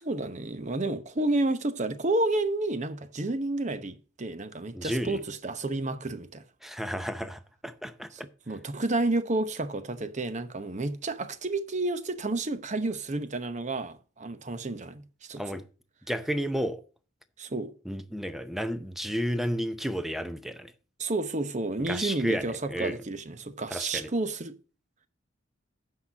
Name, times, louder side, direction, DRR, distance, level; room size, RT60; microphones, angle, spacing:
voice 1, 0.0-6.4 8.1-8.2 8.5-15.4 17.4-17.7 21.0-24.6, right 2 dB, 35° right, 0.8 m, -30 dB
voice 2, 4.7-5.2 6.6-8.1 15.4-15.6 16.1-16.8 17.9-20.7 21.9-23.0 23.7-24.1, equal, ahead, 0.6 m, -32 dB
8.5 x 5.7 x 5.8 m
head